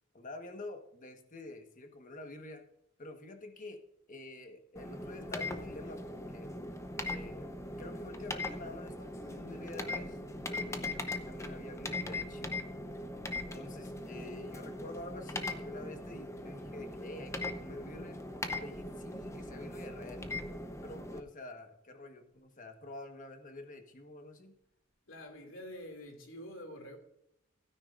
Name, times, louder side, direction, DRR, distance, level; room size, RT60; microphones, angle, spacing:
voice 1, 0.1-2.6 3.0-3.8 4.1-6.5 7.0-10.2 10.5-12.6 13.3-18.2 18.5-20.2 20.8-24.5, left 2 dB, 40° left, 1.3 m, -48 dB
sound 1, 4.8-21.2, left 2 dB, 15° left, 0.8 m, -40 dB
voice 2, 25.1-27.0, equal, 85° left, 2.5 m, -47 dB
16.0 x 9.8 x 2.5 m
head